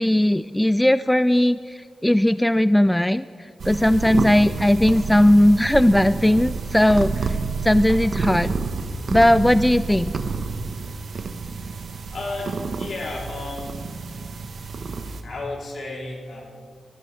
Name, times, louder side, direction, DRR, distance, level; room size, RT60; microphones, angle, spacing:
voice 1, 0.0-3.2 3.7-7.3 7.6-8.5 9.1-10.2, left 1 dB, 10° left, 15 dB, 0.3 m, -18 dB
sound 1, 3.6-15.2, right 4 dB, 70° right, 1.1 m, -29 dB
voice 2, 12.1-13.8 14.1-14.3 15.2-16.4, left 2 dB, 65° left, -2 dB, 3.3 m, -33 dB
21.0 x 15.0 x 3.3 m, 2.1 s
cardioid pair, 50°, 0 cm